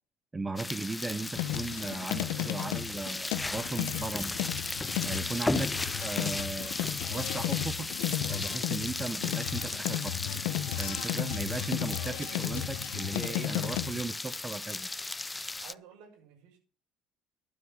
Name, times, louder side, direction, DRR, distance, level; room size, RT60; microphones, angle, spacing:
voice 1, 0.3-4.5 5.0-5.7 6.0-6.8 7.1-7.9 8.3-10.1 10.8-14.9, right 3 dB, 20° right, 13 dB, 1.1 m, -37 dB
sound 1, 0.6-15.7, left 2 dB, 15° left, 0.5 m, -36 dB
sound 2, 1.3-14.0, left 14 dB, 80° left, 0.9 m, -34 dB
voice 2, 13.2-13.8 15.6-16.6, right 8 dB, 75° right, 1 dB, 6.8 m, -51 dB
12.0 x 7.9 x 7.4 m, 0.38 s
hypercardioid pair, 70°, 0 cm